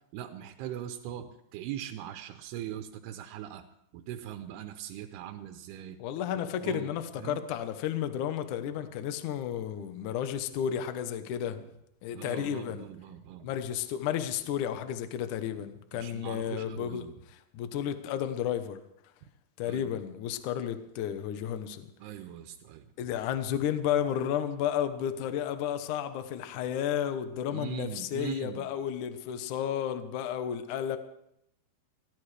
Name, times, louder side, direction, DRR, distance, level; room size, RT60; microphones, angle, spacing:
voice 1, 0.1-3.6 3.9-6.0 6.6-7.4 12.1-13.5 15.9-17.1 19.6-19.9 22.0-22.9 27.5-28.6, right 11 dB, 85° right, 6 dB, 2.8 m, -41 dB
voice 2, 6.0-11.6 12.0-12.9 13.4-18.8 19.6-21.9 23.0-31.0, left 9 dB, 70° left, 9 dB, 2.0 m, -32 dB
sound 1, 8.4-8.8 9.4-9.8 10.4-10.8 11.4-11.8 12.4-12.8 13.4-13.8 14.4-14.8 15.4-15.8 16.4-16.8, left 1 dB, 15° left, 5.4 m, -55 dB
22.0 x 16.5 x 3.3 m, 0.79 s
omnidirectional pair, 4.6 m